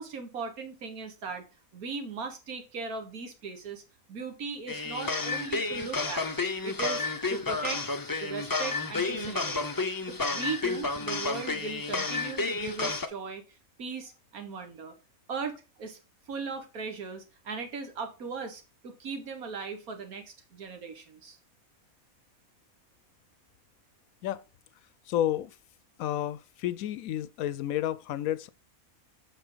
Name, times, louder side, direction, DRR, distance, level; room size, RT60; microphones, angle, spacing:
voice 1, 0.0-1.5 1.7-3.8 4.1-6.3 6.6-7.8 8.2-9.6 10.1-14.9 15.3-16.0 16.3-21.4, right 5 dB, 85° right, 1.9 m, -38 dB
sound 1, 4.7-13.1, left 3 dB, 30° left, 0.4 m, -31 dB
voice 2, 25.1-25.6 26.0-28.5, left 12 dB, 80° left, 1.0 m, -31 dB
8.1 x 5.6 x 3.9 m
omnidirectional pair, 1.5 m